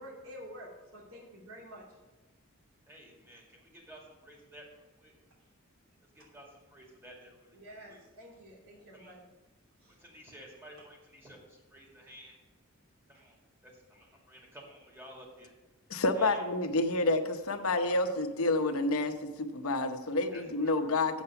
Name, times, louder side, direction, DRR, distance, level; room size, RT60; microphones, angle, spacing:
voice 1, 0.0-1.8 7.5-9.3 9.8-10.0 10.8-10.9, equal, 75° right, -3 dB, 2.9 m, -49 dB
voice 2, 2.9-5.1 6.1-7.6 7.9-8.0 8.9-9.1 10.0-12.4 13.1-13.4 13.6-15.5 16.1-16.4 20.3-20.7, equal, 10° right, -2 dB, 2.1 m, -53 dB
voice 3, 15.9-21.2, left 2 dB, 80° left, 6 dB, 0.9 m, -29 dB
7.9 x 7.3 x 5.6 m, 1.1 s
head